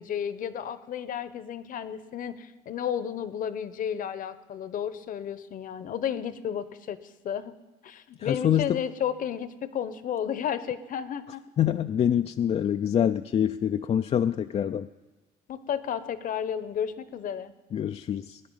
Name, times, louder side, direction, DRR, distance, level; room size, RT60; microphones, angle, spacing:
voice 1, 0.0-7.0 7.2-7.5 7.8-11.4 15.5-17.5, left 8 dB, 55° left, 14 dB, 0.9 m, -32 dB
voice 2, 8.2-8.8 11.6-14.9 17.7-18.4, left 9 dB, 40° left, 9 dB, 0.4 m, -25 dB
20.5 x 9.8 x 5.6 m, 1.2 s
cardioid pair, 110°, 17 cm